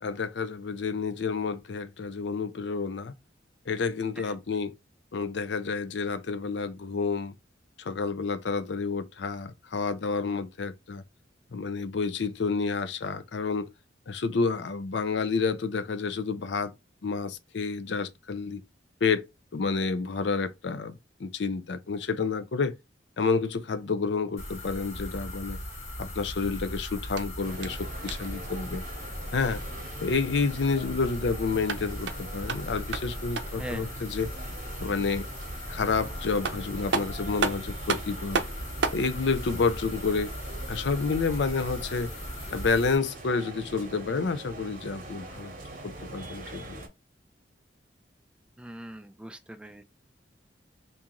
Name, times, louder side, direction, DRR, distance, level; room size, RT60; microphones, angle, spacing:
voice 1, 0.0-3.1 3.7-4.7 5.1-7.3 7.8-11.0 11.5-13.7 14.1-16.7 17.0-18.6 19.0-19.2 19.5-22.7 23.2-25.6 26.0-28.8 29.3-29.6 30.0-34.3 34.8-35.2 35.7-38.4 38.9-40.3 40.7-42.1 42.5-45.5 45.8-46.8, left 4 dB, 70° left, 0.5 m, -29 dB
sound 1, 24.4-43.0, equal, 40° left, 1.5 m, -38 dB
sound 2, 27.1-28.4 31.5-33.7 36.0-36.1 36.4-39.1, right 4 dB, 75° right, 0.5 m, -33 dB
sound 3, 27.4-46.9, right 2 dB, 45° right, 1.0 m, -43 dB
voice 2, 48.6-49.8, right 1 dB, 5° right, 0.3 m, -40 dB
3.7 x 2.6 x 2.9 m
head